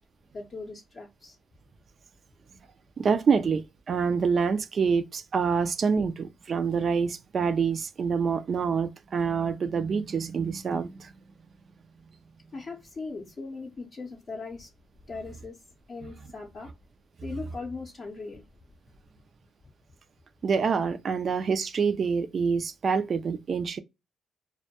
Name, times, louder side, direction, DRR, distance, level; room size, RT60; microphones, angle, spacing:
voice 1, 0.3-1.4 12.5-14.7 15.1-15.6 15.9-16.7 17.2-18.4, left 3 dB, 40° left, 0.5 m, -39 dB
voice 2, 3.0-11.1 16.0-16.1 20.4-23.8, right 5 dB, 50° right, 0.3 m, -26 dB
2.1 x 2.1 x 2.8 m
cardioid pair, 90°, 0 cm